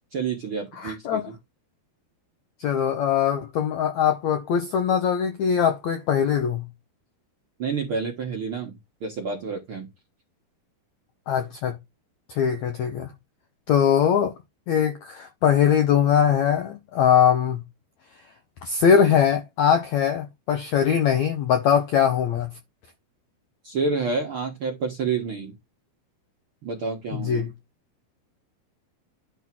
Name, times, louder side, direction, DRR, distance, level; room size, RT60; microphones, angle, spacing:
voice 1, 0.1-1.3 7.6-8.8 9.0-9.9 23.6-25.5 26.6-27.5, right 4 dB, 60° right, 1.4 m, -29 dB
voice 2, 0.8-1.2 2.6-6.6 11.3-11.7 12.3-13.1 13.7-14.3 14.7-17.6 18.6-22.5 27.1-27.5, left 8 dB, 75° left, 1.7 m, -21 dB
10.5 x 3.6 x 5.9 m
omnidirectional pair, 4.5 m